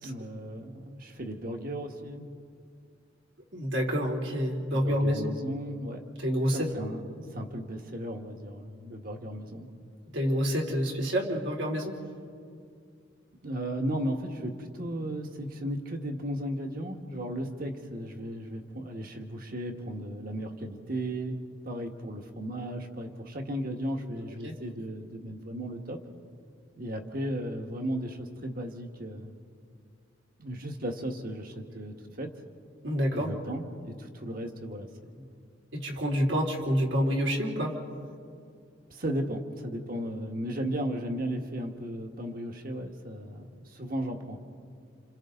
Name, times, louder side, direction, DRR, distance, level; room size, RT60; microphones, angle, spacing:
voice 1, 0.0-2.3 4.7-6.0 6.3-9.7 13.4-21.4 21.6-26.0 26.8-29.3 30.4-32.3 33.1-34.9 35.1-35.4 38.9-44.4, right 1 dB, 50° right, 3 dB, 1.9 m, -35 dB
voice 2, 3.5-5.3 6.2-6.7 10.1-11.9 24.4-24.5 32.8-33.3 35.7-37.7, equal, 75° right, -1 dB, 3.6 m, -28 dB
29.5 x 28.0 x 4.0 m, 2.3 s
head